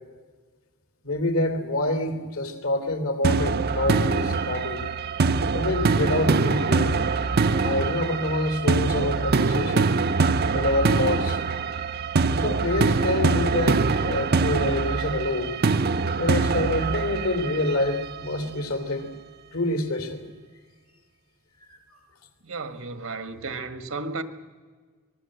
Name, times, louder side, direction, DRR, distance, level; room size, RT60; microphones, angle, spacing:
voice 1, 1.0-4.9 5.5-7.0 7.5-10.0 10.5-11.4 12.3-15.6 16.2-19.1 19.5-20.3 21.7-22.0, left 1 dB, 75° left, 3.0 m, -27 dB
sound 1, 3.2-18.2, right 4 dB, 50° right, 0.6 m, -23 dB
voice 2, 22.4-24.2, right 3 dB, 75° right, 1.6 m, -33 dB
24.5 x 20.0 x 7.8 m
head